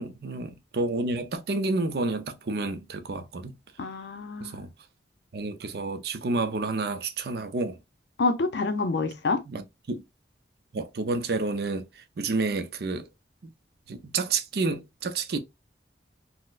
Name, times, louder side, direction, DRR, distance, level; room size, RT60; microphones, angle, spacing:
voice 1, 0.0-3.5 4.4-4.7 5.3-7.8 9.5-10.0 10.7-11.9 12.2-13.1 13.9-15.4, right 3 dB, 60° right, 0.5 m, -30 dB
voice 2, 3.8-4.5 8.2-9.4, left 3 dB, 70° left, 0.5 m, -27 dB
4.0 x 2.0 x 2.4 m
head